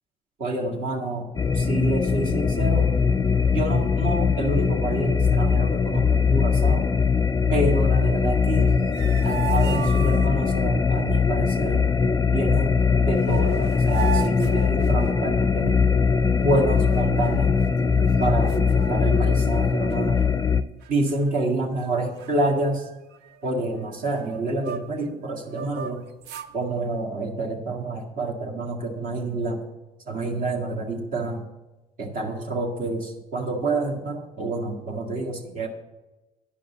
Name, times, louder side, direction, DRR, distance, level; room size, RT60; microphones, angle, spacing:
voice 1, 0.4-1.3 1.5-2.9 3.5-6.9 7.5-8.8 9.2-11.9 12.3-12.8 13.1-15.8 16.4-17.6 18.2-20.3 20.9-22.9 23.4-26.0 26.5-29.6 30.1-31.5 32.0-35.7, right 2 dB, 55° right, -1 dB, 1.8 m, -28 dB
sound 1, 1.4-20.6, left 5 dB, 25° left, 0.4 m, -21 dB
sound 2, 8.6-10.6 12.8-12.9 13.2-15.4 16.7-17.6 18.1-18.2 18.5-19.6 19.9-20.2 20.8-21.4 21.7-21.9 22.2-25.1 25.5-26.5, right 9 dB, 85° right, 0.6 m, -36 dB
10.0 x 5.2 x 7.8 m, 1.1 s
cardioid pair, 110°, 17 cm